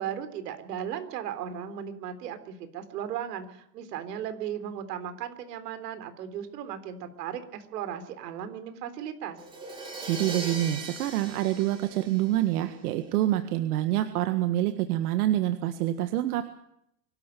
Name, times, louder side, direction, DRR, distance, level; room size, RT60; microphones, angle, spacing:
voice 1, 0.0-9.4, right 9 dB, 85° right, 10 dB, 3.9 m, -36 dB
Crash cymbal, 9.4-13.1, right 3 dB, 10° right, 4.4 m, -40 dB
voice 2, 10.0-16.4, right 13 dB, 65° right, 9 dB, 1.8 m, -26 dB
24.5 x 12.5 x 9.4 m, 0.75 s
supercardioid pair, 160°, 47 cm